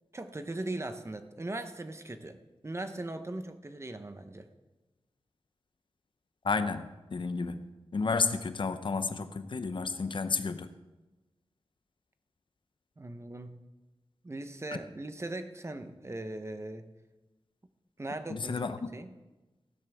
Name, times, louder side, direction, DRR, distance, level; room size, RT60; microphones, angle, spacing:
voice 1, 0.1-4.5 13.0-13.6 14.2-16.9 18.0-18.6 18.9-19.2, right 2 dB, 30° right, 8 dB, 0.9 m, -39 dB
voice 2, 6.4-7.7 7.9-10.7 18.3-18.9, left 4 dB, 55° left, 10 dB, 0.7 m, -31 dB
15.5 x 12.0 x 3.6 m, 1.1 s
wide cardioid pair, 95°, 10 cm